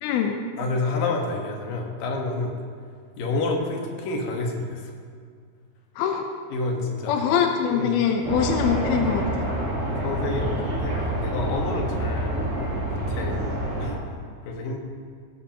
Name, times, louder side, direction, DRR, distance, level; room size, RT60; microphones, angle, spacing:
voice 1, 0.0-0.4 6.0-6.2 7.1-9.5, left 7 dB, 85° left, 4 dB, 2.1 m, -23 dB
voice 2, 0.6-2.5 3.2-4.9 6.5-7.2 7.7-8.0 8.7-8.8 10.0-12.5 12.9-13.4 13.8-14.8, left 2 dB, 60° left, 0 dB, 2.6 m, -29 dB
sound 1, 8.2-13.9, right 1 dB, 60° right, 5.1 m, -27 dB
16.5 x 12.5 x 3.0 m, 2.1 s
omnidirectional pair, 5.5 m